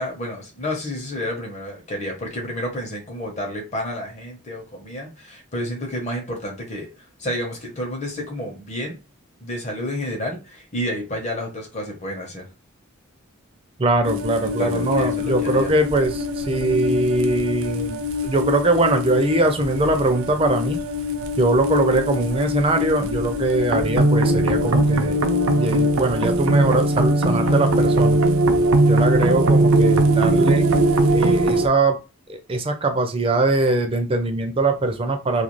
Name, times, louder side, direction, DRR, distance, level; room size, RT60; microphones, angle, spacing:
voice 1, 0.0-6.9 7.2-9.0 9.4-12.4 14.6-15.7, equal, 35° left, 0.8 m, -30 dB
voice 2, 13.8-20.8 21.4-25.2 25.5-28.2 28.9-30.7 31.1-32.0 32.3-35.4, right 2 dB, 25° right, 0.4 m, -21 dB
sound 1, 14.0-31.7, right 1 dB, 80° right, 0.4 m, -21 dB
2.4 x 2.2 x 3.0 m
head